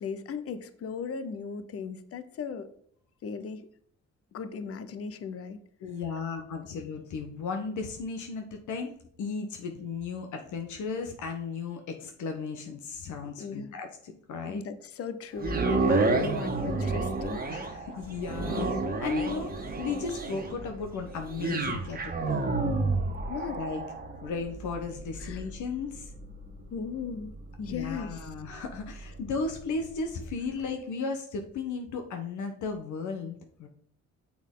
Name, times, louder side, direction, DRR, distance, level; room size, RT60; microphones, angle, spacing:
voice 1, 0.0-2.7 3.2-3.7 4.3-5.6 13.4-13.8 14.5-17.4 17.9-18.0 18.6-18.8 23.3-23.6 25.2-25.4 26.7-28.3, left 5 dB, 50° left, 12 dB, 0.7 m, -37 dB
voice 2, 5.8-14.6 17.5-18.6 19.0-22.5 23.5-23.8 24.2-26.1 27.7-33.7, left 4 dB, 75° left, 4 dB, 1.0 m, -35 dB
sound 1, 15.4-29.6 30.1-30.2, right 3 dB, 30° right, 1.6 m, -31 dB
6.3 x 6.1 x 3.7 m, 0.64 s
cardioid pair, 90°, 30 cm